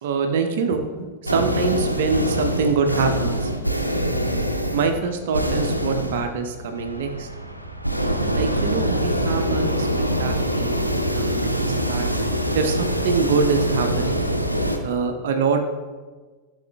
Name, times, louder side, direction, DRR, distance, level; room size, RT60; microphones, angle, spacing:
voice 1, 0.0-3.5 4.7-7.3 8.3-10.8 11.1-12.1 12.5-14.2 14.8-15.6, right 5 dB, 55° right, 5 dB, 0.7 m, -24 dB
sound 1, 1.3-14.8, equal, 90° right, 0.6 m, -24 dB
13.0 x 6.3 x 2.3 m, 1.4 s
figure-of-eight pair, 90°, 0 cm